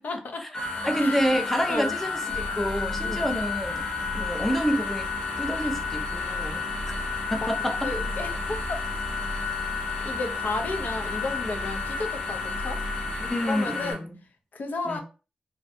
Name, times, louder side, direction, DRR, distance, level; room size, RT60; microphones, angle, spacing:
voice 1, 0.0-0.5 1.0-1.4 1.7-1.9 3.0-3.3 4.2-4.3 5.6-5.8 6.9-7.1 7.8-8.4 8.7-8.8 10.0-12.8 13.5-14.1 14.5-15.0, left 3 dB, 75° left, 0.5 m, -33 dB
sound 1, 0.5-13.9, left 5 dB, 35° left, 0.9 m, -31 dB
voice 2, 0.9-3.9 4.1-5.1 5.4-6.6 7.3-7.9 13.2-14.2 14.9-15.0, equal, 10° left, 0.5 m, -28 dB
sound 2, 2.3-13.3, right 1 dB, 75° right, 0.4 m, -38 dB
2.6 x 2.1 x 2.6 m
wide cardioid pair, 120°, 3 cm